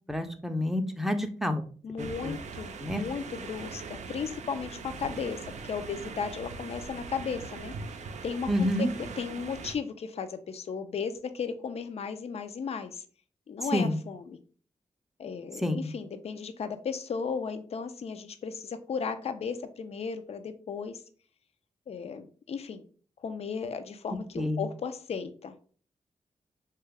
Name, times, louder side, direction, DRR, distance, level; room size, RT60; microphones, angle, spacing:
voice 1, 0.1-1.6 2.0-2.3 2.8-3.0 8.5-8.9 13.7-14.0 15.6-15.9 24.4-24.6, left 1 dB, ahead, 7 dB, 0.5 m, -28 dB
voice 2, 1.8-7.7 8.2-13.0 13.5-14.4 15.2-21.0 21.9-22.8 23.2-25.6, left 6 dB, 60° left, 10 dB, 0.4 m, -35 dB
sound 1, 2.0-9.8, right 5 dB, 75° right, 0.4 m, -41 dB
3.0 x 2.2 x 3.4 m, 0.42 s
cardioid pair, 55°, 12 cm